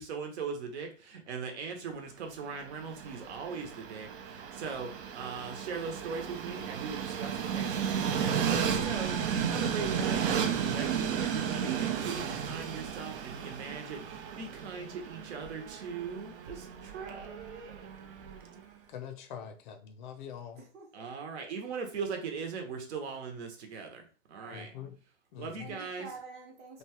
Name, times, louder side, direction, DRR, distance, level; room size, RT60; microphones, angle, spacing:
voice 1, 0.0-9.2 9.4-17.9 20.9-24.7 25.4-26.1, right 5 dB, 60° right, 4 dB, 0.9 m, -40 dB
Train, 2.5-18.6, right 7 dB, 45° right, 0.5 m, -34 dB
voice 2, 18.9-20.6 24.5-24.9 25.3-25.5, left 8 dB, 40° left, 7 dB, 0.5 m, -43 dB
voice 3, 20.5-20.9 21.1-21.2 24.3-25.0 25.6-26.8, right 4 dB, 25° right, 1 dB, 0.9 m, -48 dB
2.9 x 2.3 x 2.9 m, 0.40 s
hypercardioid pair, 130°, 38 cm